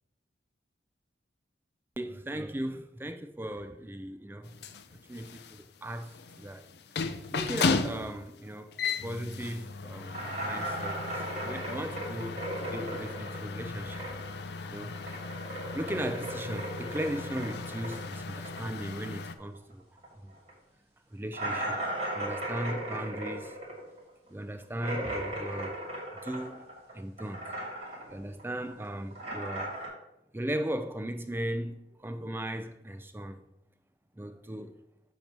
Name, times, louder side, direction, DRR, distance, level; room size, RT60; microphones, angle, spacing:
voice 1, 2.0-4.5 5.1-6.7 7.3-14.1 14.7-14.9 15.7-19.8 20.2-20.3 21.1-21.8 22.1-23.6 24.3-25.8 26.1-26.6 26.9-27.5 28.1-29.7 30.3-33.4 34.1-34.8, right 1 dB, 10° right, 0.4 m, -37 dB
sound 1, 4.4-19.3, left 4 dB, 60° left, 0.4 m, -36 dB
sound 2, 10.1-14.4 14.7-19.7 20.0-20.1 20.5-20.6 21.3-26.9 27.2-28.1 28.4-29.9, right 1 dB, 35° right, 2.6 m, -37 dB
8.5 x 3.0 x 5.9 m
head